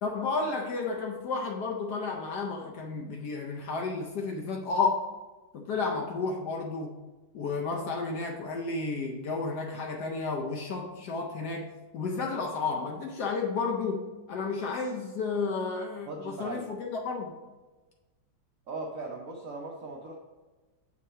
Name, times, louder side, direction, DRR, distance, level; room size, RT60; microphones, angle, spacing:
voice 1, 0.0-5.0 5.5-6.9 7.3-17.3, left 4 dB, 70° left, 1.0 m, -32 dB
voice 2, 16.1-16.7 18.7-20.1, right 3 dB, 70° right, 0.7 m, -38 dB
7.1 x 3.0 x 5.4 m
omnidirectional pair, 2.2 m